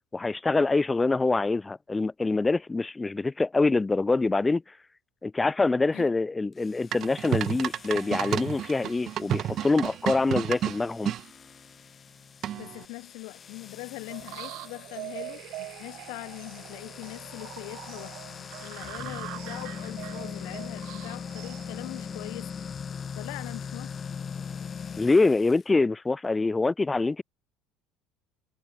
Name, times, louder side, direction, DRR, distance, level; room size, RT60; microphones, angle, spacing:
voice 1, 0.1-4.6 5.2-11.1 25.0-27.2, left 3 dB, 15° left, 0.4 m, -25 dB
sound 1, 6.5-25.6, left 6 dB, 30° left, 6.8 m, -41 dB
sound 2, 6.9-11.2 12.4-12.8, right 11 dB, 50° right, 0.8 m, -31 dB
voice 2, 12.6-22.5 23.1-24.0, left 29 dB, 75° left, 2.9 m, -42 dB
sound 3, 14.1-22.5, right 19 dB, 65° right, 4.7 m, -43 dB
supercardioid pair, 115°, 0 cm